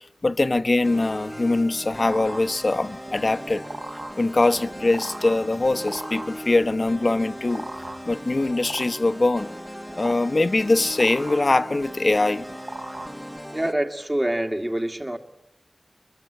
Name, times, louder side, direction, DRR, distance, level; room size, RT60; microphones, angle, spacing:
voice 1, 0.2-3.6 4.2-7.6 8.0-9.5 10.0-12.4, left 2 dB, 50° left, 1.0 m, -22 dB
sound 1, 0.8-13.7, equal, ahead, 1.0 m, -38 dB
sound 2, 1.3-13.7, right 2 dB, 60° right, 3.9 m, -40 dB
voice 2, 13.5-15.2, right 1 dB, 25° right, 2.1 m, -26 dB
23.5 x 23.0 x 8.8 m
wide cardioid pair, 55°, 0 cm